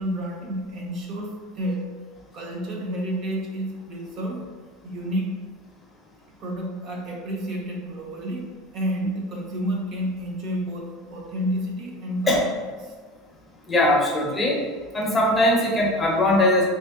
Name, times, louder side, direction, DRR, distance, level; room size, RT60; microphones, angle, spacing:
voice 1, 0.0-1.9 2.3-4.5 4.8-5.3 6.4-8.5 8.7-12.6, equal, 35° right, 0 dB, 0.5 m, -30 dB
voice 2, 13.7-14.6 14.9-16.7, left 1 dB, 15° left, -2 dB, 0.5 m, -20 dB
3.1 x 2.6 x 3.5 m, 1.4 s
cardioid pair, 165°, 0 cm